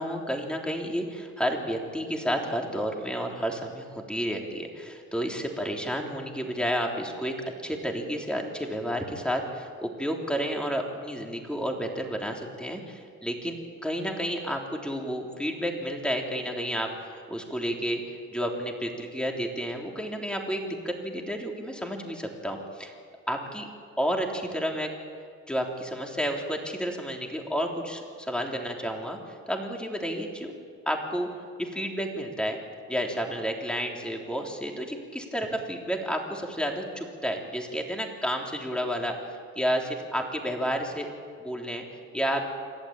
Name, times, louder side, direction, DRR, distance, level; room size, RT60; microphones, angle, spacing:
voice 1, 0.0-7.3 7.6-13.6 13.8-22.9 23.3-23.7 24.0-24.9 25.5-30.5 30.9-31.3 31.6-32.6 32.9-39.2 39.6-41.1 41.4-42.5, equal, 5° left, 1 dB, 3.4 m, -31 dB
27.0 x 11.5 x 8.9 m, 2.1 s
cardioid pair, 90°, 30 cm